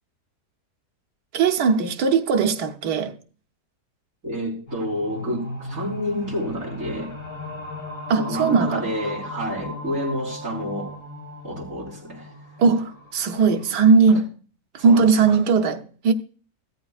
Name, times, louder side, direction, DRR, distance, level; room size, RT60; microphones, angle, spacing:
voice 1, 1.3-3.1 8.1-8.9 12.6-14.3 14.7-16.1, right 5 dB, 85° right, 1.5 m, -19 dB
voice 2, 4.2-7.1 8.2-11.0 11.4-12.4 14.8-15.4, equal, 55° right, 4.1 m, -29 dB
sound 1, 4.7-13.9, left 1 dB, 80° left, 4.3 m, -37 dB
14.5 x 13.0 x 2.4 m
omnidirectional pair, 1.7 m